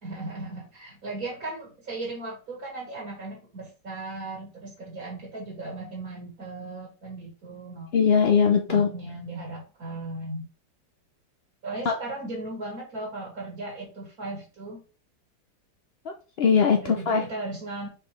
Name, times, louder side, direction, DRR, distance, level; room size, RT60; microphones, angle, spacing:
voice 1, 0.0-7.9 8.7-10.5 11.6-14.8 16.8-17.9, right 2 dB, 55° right, -1 dB, 2.2 m, -37 dB
voice 2, 7.9-8.9 11.9-12.0 16.1-17.2, left 6 dB, 60° left, 3 dB, 0.6 m, -21 dB
6.0 x 4.7 x 3.3 m, 0.35 s
omnidirectional pair, 1.9 m